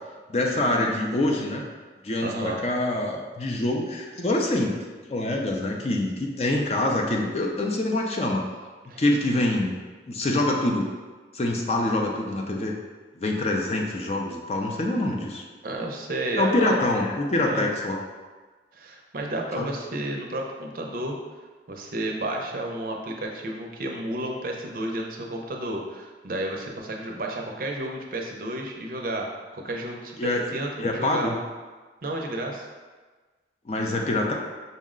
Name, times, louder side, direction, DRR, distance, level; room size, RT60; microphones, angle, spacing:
voice 1, 0.3-1.6 2.0-4.8 5.0-8.4 9.0-9.8 10.1-10.9 11.3-12.8 13.2-15.5 16.3-18.0 19.6-19.7 30.2-30.4 30.8-31.4 33.7-34.3, left 1 dB, 35° left, 0 dB, 0.4 m, -25 dB
voice 2, 2.2-2.6 8.9-9.0 15.6-16.8 17.5-17.7 18.7-21.2 21.7-29.3 29.5-31.4 32.0-32.7, right 1 dB, 50° right, 1 dB, 0.5 m, -31 dB
5.4 x 2.1 x 3.6 m, 1.3 s
head